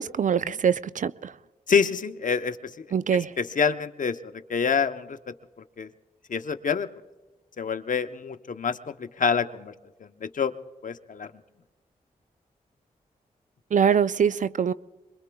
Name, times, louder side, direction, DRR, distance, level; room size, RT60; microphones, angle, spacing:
voice 1, 0.0-1.3 2.9-3.3 13.7-14.7, right 7 dB, 55° right, 16 dB, 0.5 m, -23 dB
voice 2, 1.7-2.9 3.1-5.2 5.8-5.9 6.3-6.9 7.6-9.7 10.0-10.5 10.8-11.3, left 6 dB, 55° left, 10 dB, 0.8 m, -27 dB
25.5 x 22.0 x 2.3 m, 1.2 s
supercardioid pair, 40°, 16 cm